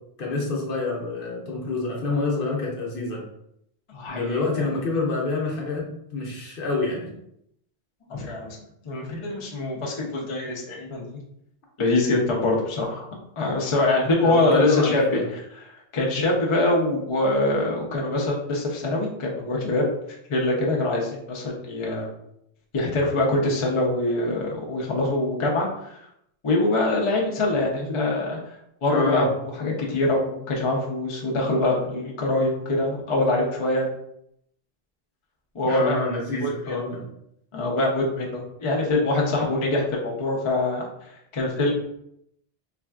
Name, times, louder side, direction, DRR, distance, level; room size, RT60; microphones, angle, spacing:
voice 1, 0.2-3.2 4.1-7.1 14.2-15.2 28.9-29.3 35.6-37.0, left 3 dB, 65° left, -1 dB, 0.9 m, -27 dB
voice 2, 3.9-4.6 8.1-8.6 8.8-11.0 11.8-13.1 13.4-15.2 15.9-19.9 20.3-22.1 22.7-26.0 26.4-28.4 28.8-33.9 35.5-36.0 36.4-36.8 37.5-41.8, left 2 dB, 40° left, -2 dB, 0.5 m, -24 dB
3.3 x 2.4 x 2.2 m, 0.75 s
omnidirectional pair, 1.0 m